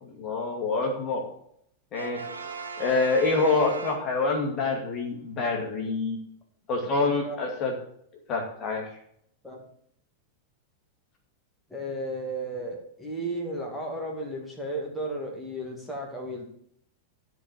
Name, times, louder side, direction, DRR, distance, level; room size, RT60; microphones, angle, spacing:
voice 1, 0.0-1.2 1.9-2.2 2.8-6.2 6.7-7.7 8.3-8.8, left 3 dB, 35° left, 1 dB, 2.3 m, -26 dB
Brass instrument, 1.9-4.6, right 5 dB, 75° right, 1.2 m, -38 dB
voice 2, 7.0-7.4 9.4-9.6 11.7-16.5, right 1 dB, 5° left, -2 dB, 2.4 m, -34 dB
12.0 x 4.6 x 7.2 m, 0.69 s
figure-of-eight pair, 90°, 0 cm